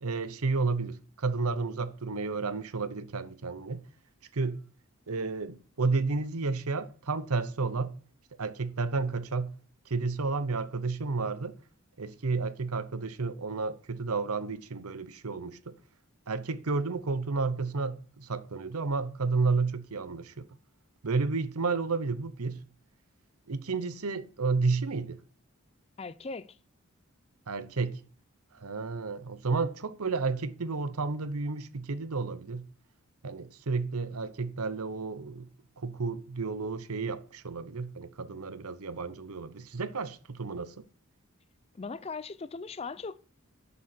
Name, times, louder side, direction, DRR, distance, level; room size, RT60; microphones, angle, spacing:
voice 1, 0.0-3.8 4.3-4.7 5.1-8.0 8.4-9.6 9.9-11.6 12.0-15.8 16.3-20.5 21.0-22.6 23.5-25.2 27.5-28.0 28.6-32.7 33.2-35.5 35.8-40.8, right 4 dB, 80° right, 0.8 m, -31 dB
voice 2, 26.0-26.6 41.7-43.2, left 4 dB, 25° left, 0.4 m, -39 dB
11.0 x 7.1 x 4.4 m
head